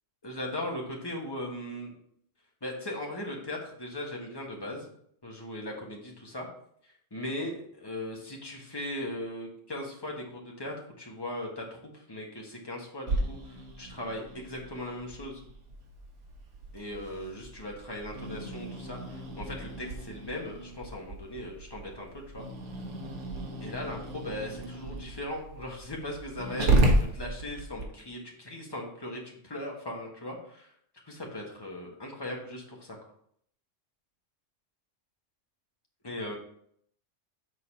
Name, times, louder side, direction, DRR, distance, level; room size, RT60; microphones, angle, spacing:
voice 1, 0.2-1.9 2.6-4.9 5.2-6.5 6.8-15.4 16.7-22.5 23.6-30.7 31.0-33.0 36.0-36.4, left 1 dB, 20° left, -1 dB, 1.5 m, -38 dB
Growling, 13.1-27.9, right 1 dB, 70° right, 1.5 m, -33 dB
6.6 x 4.1 x 5.4 m, 0.67 s
omnidirectional pair, 1.3 m